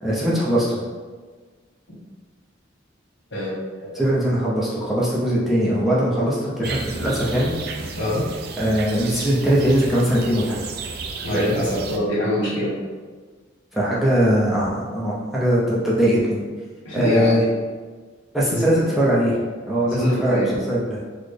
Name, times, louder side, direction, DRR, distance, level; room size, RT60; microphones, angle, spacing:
voice 1, 0.0-0.8 3.9-7.5 8.6-10.6 11.3-11.5 13.7-16.4 16.9-17.4 18.3-19.4 19.7-21.0, equal, ahead, -8 dB, 0.5 m, -21 dB
voice 2, 3.3-4.0 8.0-8.2 11.2-12.7 16.8-17.5 18.5-18.6 19.8-20.5, equal, 70° left, -7 dB, 1.4 m, -24 dB
sound 1, 6.6-12.0, right 4 dB, 55° right, 0.3 m, -34 dB
4.0 x 2.1 x 3.2 m, 1.4 s
head